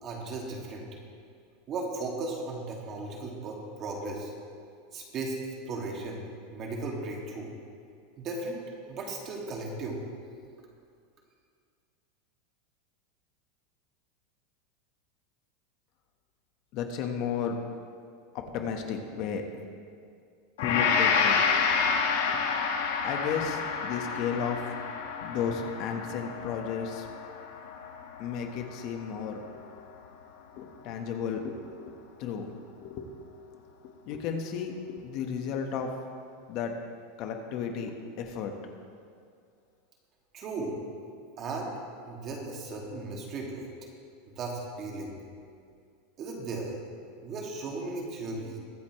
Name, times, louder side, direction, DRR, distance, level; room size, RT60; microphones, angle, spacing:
voice 1, 0.0-0.9 1.7-4.3 4.9-5.4 5.7-6.2 6.5-7.5 8.2-8.6 8.9-10.0 40.3-40.8 41.4-41.7 42.0-43.7 44.4-45.1 46.2-46.7 47.2-48.6, right 3 dB, 35° right, -1 dB, 2.5 m, -36 dB
voice 2, 16.7-17.5 18.3-19.4 20.6-21.5 21.7-21.8 22.3-22.4 23.0-24.6 25.2-27.1 28.2-29.6 30.5-31.9 32.2-32.5 32.8-33.1 33.8-35.9 36.5-36.7 37.2-38.5, left 7 dB, 50° left, 4 dB, 1.5 m, -33 dB
Gong, 20.6-28.9 29.3-29.5, left 5 dB, 80° left, 1.7 m, -29 dB
22.5 x 8.4 x 3.3 m, 2.3 s
supercardioid pair, 145°, 0 cm